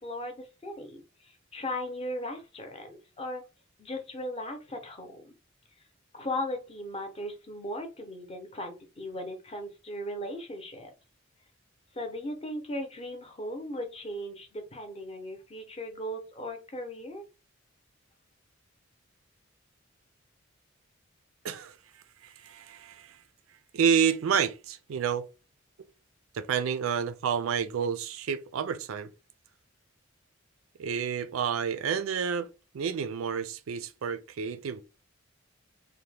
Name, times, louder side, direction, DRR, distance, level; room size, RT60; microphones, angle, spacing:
voice 1, 0.0-3.4 3.8-5.4 6.1-10.9 11.9-17.2, left 1 dB, 30° left, 0.7 m, -37 dB
voice 2, 21.4-21.7 22.2-23.2 23.7-25.3 26.3-29.1 30.8-32.5 32.7-34.8, right 7 dB, 80° right, 0.4 m, -29 dB
2.8 x 2.1 x 3.2 m
head